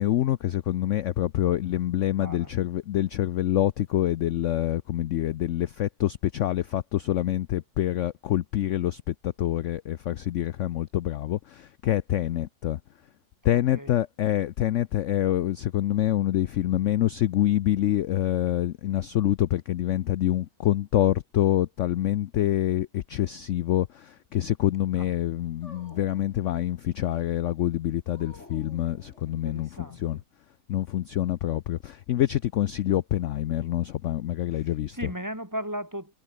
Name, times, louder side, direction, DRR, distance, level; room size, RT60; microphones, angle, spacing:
voice 1, 0.0-12.8 13.4-30.2 30.7-35.1, left 12 dB, 70° left, 0.7 m, -26 dB
voice 2, 2.2-2.5 13.5-14.0 25.0-25.1 29.3-30.2 34.5-36.2, equal, 10° right, 3.3 m, -37 dB
Dog, 25.6-27.0 28.1-29.8, left 2 dB, 40° left, 5.6 m, -51 dB
omnidirectional pair, 1.8 m